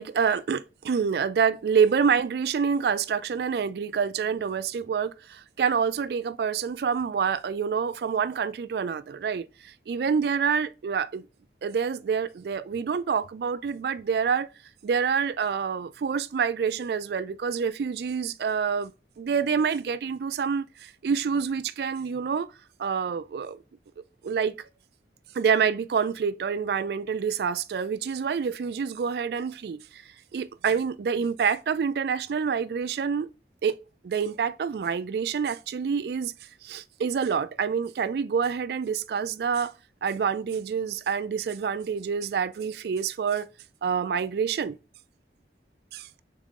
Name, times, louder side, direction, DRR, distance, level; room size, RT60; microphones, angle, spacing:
voice 1, 0.0-11.3 11.6-14.5 14.8-18.9 19.2-22.5 22.8-23.6 24.2-24.5 25.3-30.0 30.3-33.3 33.6-33.8 34.0-36.3 36.6-39.7 40.0-43.5 43.8-44.8, right 6 dB, 65° right, 0.3 m, -27 dB
3.7 x 3.6 x 3.6 m
head